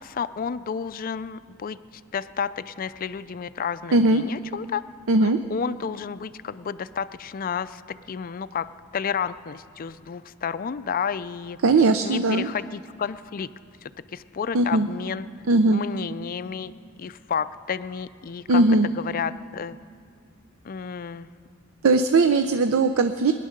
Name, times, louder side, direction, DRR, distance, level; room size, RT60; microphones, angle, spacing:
voice 1, 0.0-1.8 2.1-4.8 5.2-7.8 8.1-11.6 12.0-13.5 13.8-15.3 15.7-16.7 17.0-18.6 19.0-19.8 20.6-21.3, left 6 dB, 40° left, 14 dB, 0.4 m, -31 dB
voice 2, 3.9-4.2 5.1-5.4 11.6-12.5 14.5-14.9 15.5-15.8 18.5-18.9 21.8-23.3, right 3 dB, 70° right, 9 dB, 0.5 m, -19 dB
22.0 x 10.0 x 6.5 m, 2.3 s
head